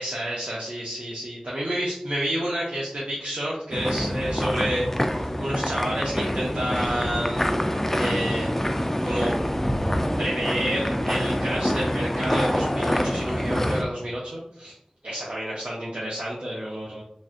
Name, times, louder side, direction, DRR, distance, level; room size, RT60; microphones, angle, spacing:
voice 1, 0.0-7.5 8.0-8.5 9.0-9.3 10.2-14.8 15.0-17.0, right 1 dB, 70° right, -5 dB, 0.6 m, -29 dB
sound 1, 3.7-13.8, equal, 15° left, 0.3 m, -26 dB
3.2 x 2.5 x 2.5 m, 0.68 s
wide cardioid pair, 40°, 2 cm